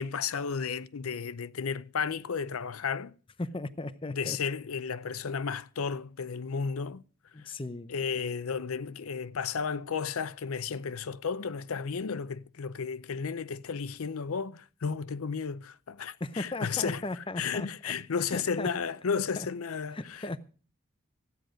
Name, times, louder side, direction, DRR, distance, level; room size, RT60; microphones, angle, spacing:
voice 1, 0.0-3.2 4.0-7.0 7.9-17.0 17.4-20.4, left 6 dB, 85° left, 0.6 m, -33 dB
voice 2, 3.4-4.4 7.3-7.9 16.2-17.9 18.3-18.7 19.4-19.5 19.9-20.4, left 2 dB, 25° left, 0.6 m, -36 dB
15.0 x 9.3 x 5.0 m
head